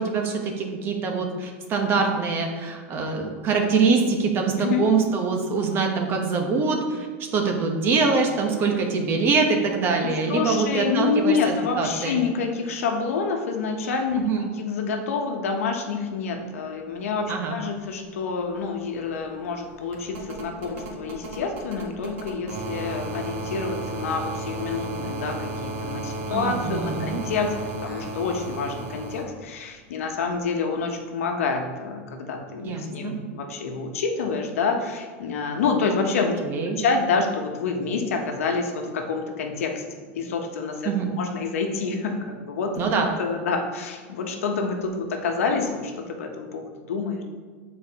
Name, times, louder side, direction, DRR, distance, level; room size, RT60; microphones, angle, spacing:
voice 1, 0.0-7.1 7.3-12.2 14.2-14.5 17.3-17.6 26.3-27.2 32.6-33.1 36.4-36.8 40.8-41.1 42.8-43.1, right 4 dB, 30° right, 3 dB, 0.9 m, -24 dB
voice 2, 10.0-14.2 14.5-27.5 27.8-36.5 36.8-40.9 41.2-42.9 43.2-47.2, left 4 dB, 90° left, 3 dB, 1.0 m, -27 dB
sound 1, 18.0-18.1 18.3-29.2 30.7-30.8, right 2 dB, 70° right, 1.4 m, -34 dB
9.1 x 4.3 x 2.9 m, 1.5 s
supercardioid pair, 145°, 7 cm